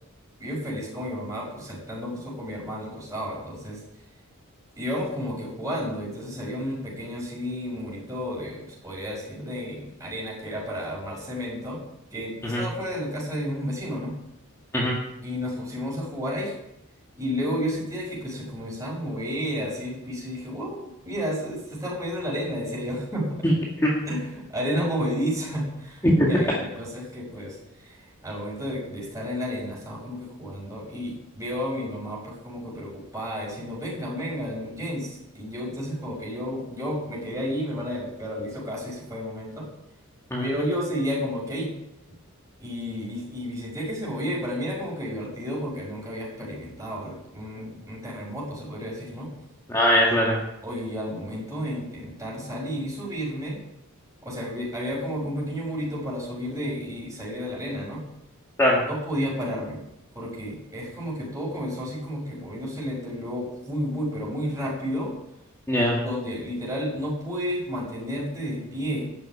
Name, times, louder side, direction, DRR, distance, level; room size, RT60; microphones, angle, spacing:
voice 1, 0.4-3.8 4.8-11.8 12.1-14.1 15.2-16.5 17.2-23.4 24.1-39.7 40.4-41.7 42.6-49.3 50.6-53.6 54.2-58.0 58.9-59.8 60.1-65.1 66.0-69.1, equal, 15° right, -4 dB, 6.0 m, -31 dB
voice 2, 49.7-50.4 58.6-58.8 65.7-66.0, equal, 15° left, -4 dB, 2.1 m, -20 dB
12.5 x 7.9 x 8.9 m, 0.84 s
head